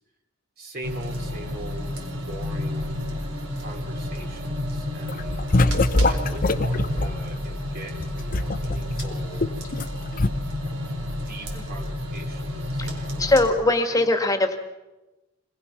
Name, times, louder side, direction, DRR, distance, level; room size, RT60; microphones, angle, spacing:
voice 1, 0.6-3.0 3.6-5.4 6.1-9.5 11.2-14.5, right 1 dB, 45° right, 1 dB, 3.1 m, -41 dB
sound 1, 0.8-13.5, left 1 dB, 85° right, 4.4 m, -31 dB
sound 2, 1.2-7.0, right 2 dB, 30° right, 1.9 m, -42 dB
sound 3, 5.1-7.1 7.9-9.9 10.2-10.3, left 2 dB, 40° left, 0.8 m, -22 dB
voice 2, 13.2-14.6, left 2 dB, 15° left, 6 dB, 1.8 m, -21 dB
26.0 x 20.0 x 5.9 m, 1.1 s
head